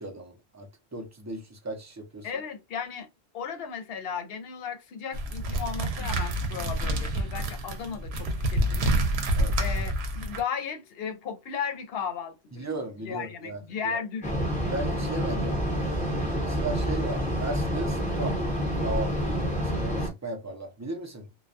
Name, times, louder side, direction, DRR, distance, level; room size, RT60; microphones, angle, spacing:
voice 1, 0.0-2.4 9.4-9.5 12.5-14.0 14.7-18.4 18.8-21.3, right 2 dB, 25° right, 0.4 m, -36 dB
voice 2, 2.2-3.1 3.3-9.0 9.6-12.7 13.0-14.4, left 6 dB, 70° left, 0.8 m, -35 dB
sound 1, 5.1-10.4, right 1 dB, 80° right, 0.9 m, -28 dB
sound 2, 14.2-20.1, equal, 10° left, 0.7 m, -28 dB
2.2 x 2.2 x 2.5 m
omnidirectional pair, 1.1 m